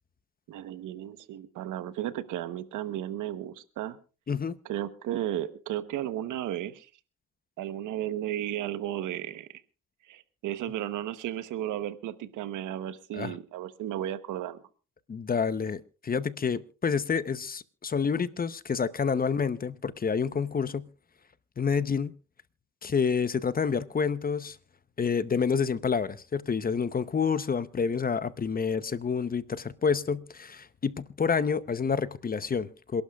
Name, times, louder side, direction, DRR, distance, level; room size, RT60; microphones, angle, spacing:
voice 1, 0.5-4.0 4.6-6.9 7.6-9.6 10.1-14.6, right 12 dB, 85° right, 1.1 m, -34 dB
voice 2, 15.1-20.9 21.6-22.1 22.8-24.6 25.0-33.0, left 6 dB, 30° left, 0.8 m, -28 dB
27.5 x 12.0 x 2.4 m
cardioid pair, 90°, 30 cm